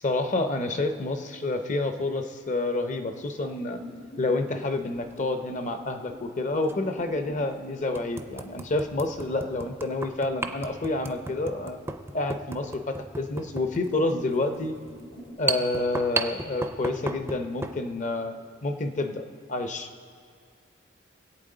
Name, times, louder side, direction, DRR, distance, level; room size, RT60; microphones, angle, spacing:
voice 1, 0.0-3.8 4.2-11.8 12.1-14.7 15.4-18.3 18.6-19.2 19.5-19.9, left 2 dB, 40° left, 7 dB, 0.7 m, -28 dB
sound 1, 3.2-9.8 13.1-13.2 14.0-15.6, equal, 60° left, 1.7 m, -47 dB
sound 2, 5.0-5.2 6.6-6.7 7.3-7.4 7.9-17.8, right 3 dB, 15° right, 0.5 m, -35 dB
22.0 x 8.4 x 3.8 m, 2.2 s
head